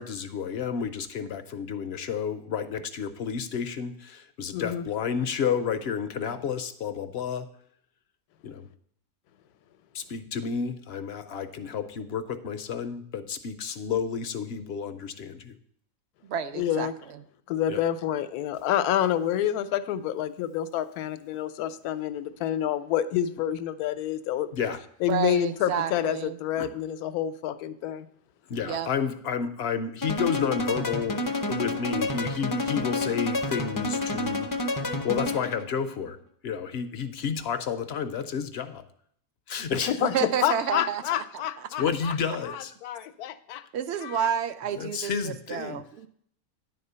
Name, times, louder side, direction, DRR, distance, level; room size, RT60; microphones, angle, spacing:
voice 1, 0.0-7.5 8.4-8.7 9.9-15.6 17.7-17.8 24.5-24.8 26.6-26.7 28.5-31.2 31.5-34.5 35.0-36.2 36.4-38.8 39.5-40.0 41.8-42.7 44.8-45.8, left 7 dB, 65° left, 9 dB, 0.6 m, -31 dB
voice 2, 4.5-4.8 16.5-16.9 17.5-24.5 25.0-28.1 39.9-42.2 42.4-43.6 44.0-44.3, left 10 dB, 85° left, 13 dB, 1.1 m, -28 dB
voice 3, 16.2-16.9 25.1-26.4 28.6-28.9 40.0-41.0 41.6-41.9 43.7-46.1, right 8 dB, 70° right, 11 dB, 0.6 m, -30 dB
sound 1, 30.0-35.7, left 2 dB, 25° left, 0.4 m, -29 dB
10.0 x 4.3 x 6.7 m, 0.65 s
omnidirectional pair, 1.6 m